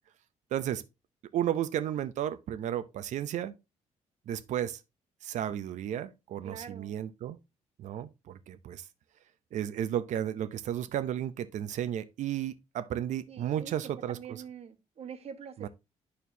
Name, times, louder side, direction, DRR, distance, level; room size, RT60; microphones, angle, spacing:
voice 1, 0.5-0.8 1.3-3.5 4.3-4.8 5.2-7.4 7.8-8.8 9.5-14.4 15.6-15.7, right 10 dB, 75° right, 0.6 m, -33 dB
voice 2, 6.4-6.9 13.3-13.8 14.1-15.7, right 7 dB, 55° right, 1.2 m, -44 dB
11.0 x 4.4 x 2.7 m
cardioid pair, 135°, 12 cm